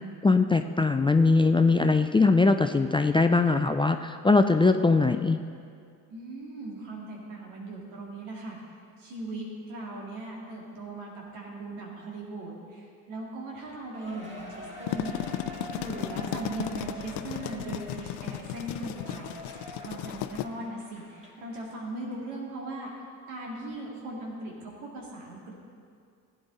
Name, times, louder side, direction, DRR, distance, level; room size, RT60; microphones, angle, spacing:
voice 1, 0.2-5.4, left 3 dB, 10° left, 7 dB, 0.4 m, -21 dB
voice 2, 6.1-8.6 9.0-15.2 15.7-22.9 23.3-25.5, right 2 dB, 80° right, -2 dB, 2.4 m, -39 dB
Cheering, 13.9-21.7 22.1-22.2 22.9-23.0, right 1 dB, 15° right, 2.6 m, -45 dB
sound 1, 14.6-20.5, left 12 dB, 65° left, 0.6 m, -35 dB
15.5 x 9.0 x 4.0 m, 2.3 s
hypercardioid pair, 50°, 44 cm